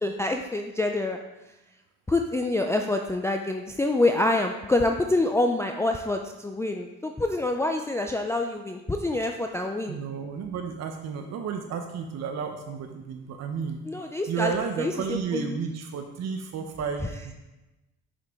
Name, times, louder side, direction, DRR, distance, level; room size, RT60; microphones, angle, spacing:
voice 1, 0.0-1.2 2.1-10.0 13.9-15.6, left 2 dB, 10° left, 3 dB, 0.4 m, -26 dB
voice 2, 9.9-13.8 14.3-17.3, right 6 dB, 55° right, 5 dB, 0.6 m, -32 dB
6.4 x 5.2 x 3.5 m, 1.0 s
supercardioid pair, 75°, 31 cm